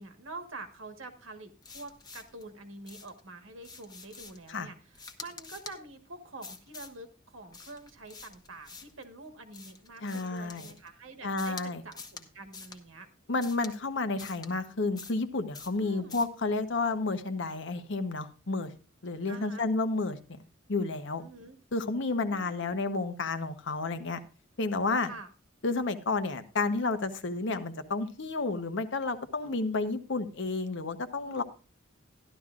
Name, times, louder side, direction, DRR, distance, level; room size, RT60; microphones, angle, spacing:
voice 1, 0.0-13.1 15.8-16.2 19.3-19.7 21.2-21.6 22.2-22.8 25.0-25.3 29.4-29.7 31.2-31.4, right 2 dB, 80° right, 7 dB, 1.4 m, -47 dB
sound 1, 1.6-2.4 2.9-3.2 3.6-4.5 4.9-5.8 6.4-7.0 7.5-9.0 9.5-10.9 11.4-11.7 11.9-12.3 12.5-12.8 13.4-13.7 14.2-14.5 15.0-15.2 15.5-15.8 16.1-16.3, left 4 dB, 20° left, 1.0 m, -47 dB
voice 2, 10.0-10.7 11.2-11.8 13.3-18.7 19.0-20.2 20.7-21.2 21.7-24.2 24.6-25.1 25.6-31.4, left 3 dB, 65° left, 9 dB, 0.9 m, -31 dB
13.0 x 11.5 x 2.4 m, 0.34 s
head